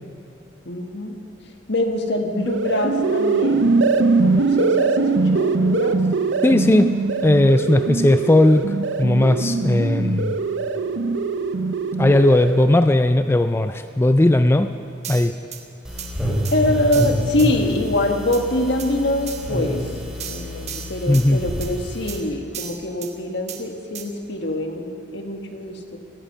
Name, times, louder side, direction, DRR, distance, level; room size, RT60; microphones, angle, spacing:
voice 1, 0.6-1.1 1.7-3.7 4.2-6.0 16.5-19.9 20.3-26.0, left 1 dB, 65° left, 4 dB, 1.7 m, -24 dB
sound 1, 2.3-12.8, right 3 dB, 80° right, 0.7 m, -21 dB
voice 2, 6.4-6.9 7.2-10.4 12.0-14.7 15.1-15.3 21.1-21.4, left 1 dB, 15° left, 9 dB, 0.4 m, -17 dB
sound 2, 15.0-15.6 16.0-16.1 16.4-16.6 16.9-17.5 18.3-18.4 18.8-18.9 19.3-19.5 20.2-21.3 21.6-21.7 22.1-22.2 22.5-23.1 23.5-23.6 23.9-24.0, right 8 dB, 35° right, 1.3 m, -34 dB
sound 3, 15.8-22.2, equal, 5° right, 4.8 m, -28 dB
17.5 x 14.0 x 5.6 m, 2.7 s
head